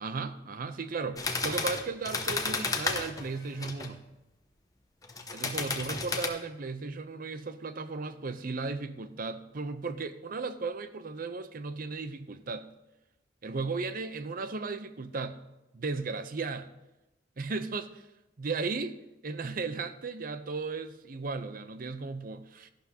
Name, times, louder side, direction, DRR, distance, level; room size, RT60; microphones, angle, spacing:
voice 1, 0.0-4.0 5.3-12.7 13.4-15.4 15.7-16.7 17.4-18.1 18.4-18.9 19.2-22.7, right 4 dB, 50° right, 11 dB, 0.6 m, -35 dB
sound 1, 1.2-3.9 5.0-6.3, left 3 dB, 20° left, 0.9 m, -32 dB
13.5 x 11.5 x 2.8 m, 0.96 s
head